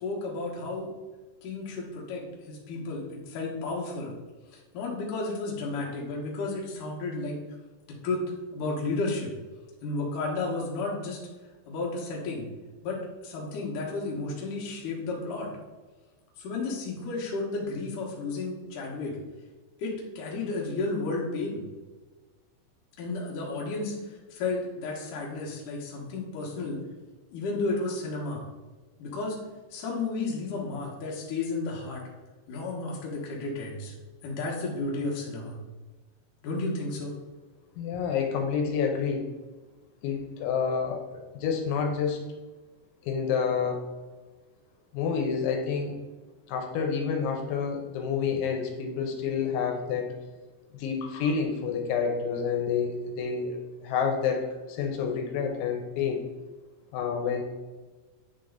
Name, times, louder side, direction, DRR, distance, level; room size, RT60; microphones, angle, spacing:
voice 1, 0.0-0.9 1.4-4.1 4.5-7.4 7.9-8.2 8.5-9.3 9.8-11.2 11.7-12.5 12.8-15.5 16.4-19.1 19.8-21.6 23.0-26.8 27.3-28.4 29.0-29.4 29.7-32.0 32.5-33.9 34.2-35.6 36.4-37.2, left 3 dB, 60° left, -3 dB, 2.4 m, -32 dB
voice 2, 37.8-39.3 40.0-41.1 41.3-42.2 43.1-43.9 44.9-45.9 46.5-50.1 50.7-53.6 53.8-56.2 56.9-57.4, left 6 dB, 80° left, 2 dB, 3.1 m, -28 dB
9.2 x 3.8 x 3.8 m, 1.2 s
omnidirectional pair, 5.3 m